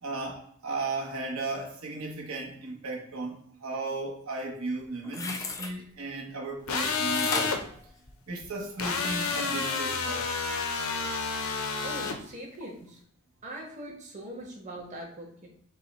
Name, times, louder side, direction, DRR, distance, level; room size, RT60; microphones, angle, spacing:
voice 1, 0.0-7.6 8.3-10.3, right 3 dB, 75° right, -1 dB, 1.0 m, -35 dB
sound 1, 4.8-5.7 7.1-8.6 9.1-9.2, left 3 dB, 15° left, 0.3 m, -35 dB
sound 2, 6.7-7.6 8.8-12.2, left 5 dB, 75° left, 0.6 m, -30 dB
voice 2, 11.4-13.0 13.4-15.5, right 1 dB, 35° right, -2 dB, 1.1 m, -42 dB
5.4 x 2.1 x 4.1 m, 0.65 s
head